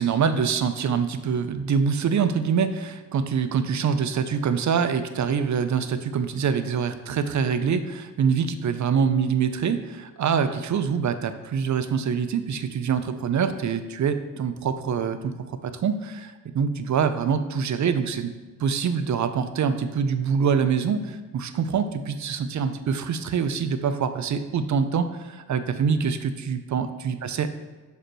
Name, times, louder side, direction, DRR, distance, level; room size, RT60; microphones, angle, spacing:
voice 1, 0.0-18.3 18.6-27.5, right 6 dB, 50° right, 10 dB, 0.5 m, -25 dB
6.4 x 5.1 x 3.0 m, 1.3 s
cardioid pair, 60°, 37 cm